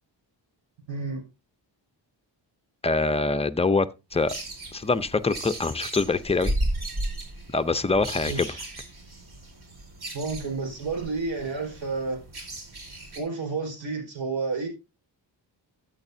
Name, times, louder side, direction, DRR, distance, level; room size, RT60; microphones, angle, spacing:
voice 1, 0.9-1.2 8.3-8.6 10.1-12.2 13.1-14.7, right 4 dB, 75° right, 4.6 m, -30 dB
voice 2, 2.8-3.9 4.1-4.3 4.7-6.5 7.5-8.5, left 3 dB, 15° left, 0.6 m, -24 dB
sound 1, 4.1-13.2, right 1 dB, 55° right, 4.2 m, -35 dB
13.0 x 8.4 x 2.7 m
cardioid pair, 90°, 45 cm